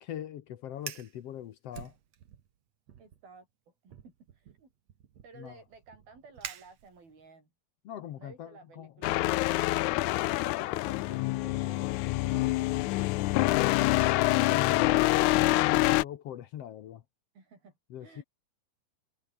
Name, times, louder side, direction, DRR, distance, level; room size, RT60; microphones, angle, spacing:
voice 1, 0.0-1.9 5.3-5.6 7.8-8.9 14.3-17.0 17.9-18.2, left 11 dB, 65° left, 1.5 m, -40 dB
Fire, 0.7-1.2 1.7-2.5 2.9-3.2 3.9-7.3, right 9 dB, 55° right, 2.5 m, -46 dB
voice 2, 3.0-3.5 3.8-4.7 5.2-7.5 8.2-13.9 17.3-17.7 18.0-18.2, right 4 dB, 90° right, 9.4 m, -54 dB
sound 1, 9.0-16.0, left 19 dB, 85° left, 1.7 m, -26 dB
omnidirectional pair, 4.2 m